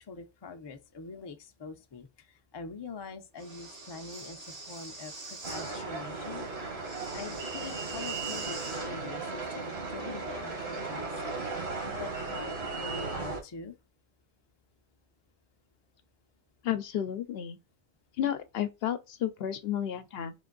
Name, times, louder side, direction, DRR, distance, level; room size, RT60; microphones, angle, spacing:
voice 1, 0.0-6.4 7.1-11.1 11.8-13.8, left 4 dB, 40° left, 0.4 m, -44 dB
Breathing, 3.4-5.8 6.8-8.9, right 2 dB, 90° right, 1.8 m, -44 dB
sound 1, 5.4-13.4, right 3 dB, 65° right, 1.4 m, -36 dB
voice 2, 16.6-17.6 18.2-20.3, left 10 dB, 65° left, 0.7 m, -32 dB
3.8 x 2.6 x 3.8 m
omnidirectional pair, 1.2 m